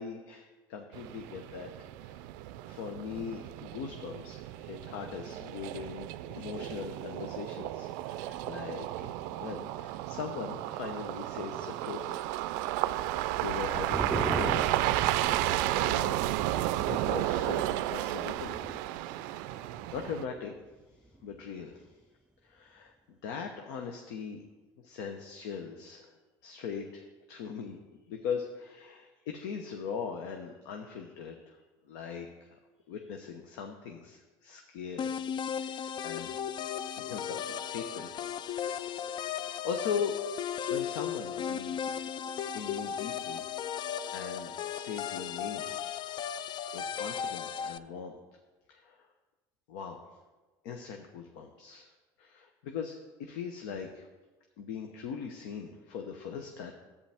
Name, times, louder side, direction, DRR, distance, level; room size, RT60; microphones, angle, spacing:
voice 1, 0.0-1.7 2.0-2.3 2.6-12.2 12.7-13.1 13.3-14.9 15.4-16.2 16.8-18.5 19.2-20.5 21.2-21.9 22.4-22.9 23.2-24.4 24.8-26.1 26.4-27.8 28.1-31.6 31.9-32.5 32.9-35.1 35.6-36.4 37.0-40.1 40.7-41.9 42.5-43.4 44.1-45.7 46.7-48.2 48.7-49.1 49.7-50.0 50.6-51.9 52.2-52.9 53.2-54.1 54.6-56.7, left 6 dB, 85° left, 4 dB, 0.8 m, -40 dB
sound 1, 0.9-20.3, right 14 dB, 80° right, 0.4 m, -33 dB
sound 2, 13.6-20.3 20.6-20.7 21.0-21.5, right 2 dB, 10° right, 0.5 m, -41 dB
sound 3, 35.0-47.8, left 8 dB, 50° left, 0.4 m, -36 dB
11.5 x 8.5 x 3.5 m, 1.2 s
supercardioid pair, 90°, 10 cm